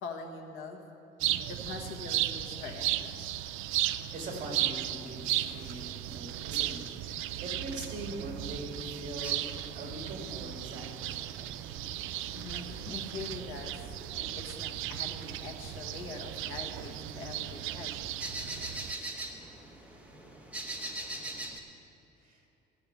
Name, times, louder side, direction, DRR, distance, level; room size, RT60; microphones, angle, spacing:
voice 1, 0.0-0.8 1.5-3.3 12.3-18.0 18.4-18.5, left 4 dB, 85° left, 3 dB, 1.5 m, -43 dB
sound 1, 1.2-18.9, right 14 dB, 80° right, 0.4 m, -35 dB
voice 2, 3.8-9.4 9.7-11.2 22.2-22.4, right 1 dB, 40° right, 0 dB, 2.4 m, -42 dB
sound 2, 9.2-21.6, right 2 dB, 5° right, 1.0 m, -44 dB
14.5 x 6.8 x 8.1 m, 2.7 s
cardioid pair, 160°, 20 cm